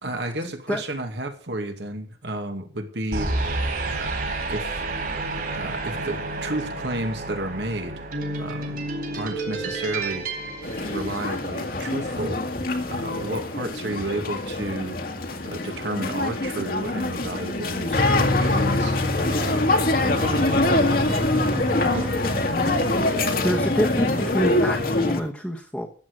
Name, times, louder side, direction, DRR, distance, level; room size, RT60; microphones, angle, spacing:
voice 1, 0.0-3.3 3.9-4.2 4.5-4.8 5.5-8.1 8.4-10.3 10.8-12.4 12.9-15.0 15.4-19.7 20.0-20.6, right 1 dB, 75° right, 2.2 m, -32 dB
sound 1, 3.1-11.7, right 2 dB, 55° right, 4.0 m, -30 dB
sound 2, 10.6-25.2, left 2 dB, 55° left, 1.8 m, -24 dB
sound 3, 20.2-25.3, right 2 dB, 35° right, 0.7 m, -35 dB
voice 2, 23.4-25.9, equal, 5° left, 1.2 m, -26 dB
14.0 x 8.3 x 6.6 m
head